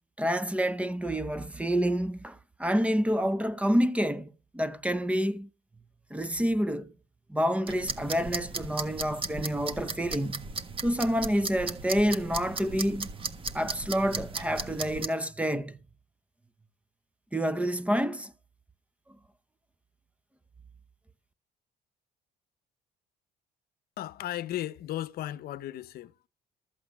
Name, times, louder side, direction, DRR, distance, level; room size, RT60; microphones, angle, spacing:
voice 1, 0.2-5.5 6.1-6.9 7.3-10.5 10.8-13.1 13.5-15.8 17.3-18.3, equal, 10° right, 0.8 m, -28 dB
sound 1, 7.7-15.1, right 4 dB, 30° right, 1.4 m, -36 dB
voice 2, 24.0-26.3, left 13 dB, 65° left, 0.8 m, -35 dB
13.5 x 8.1 x 6.0 m
cardioid pair, 110°, 17 cm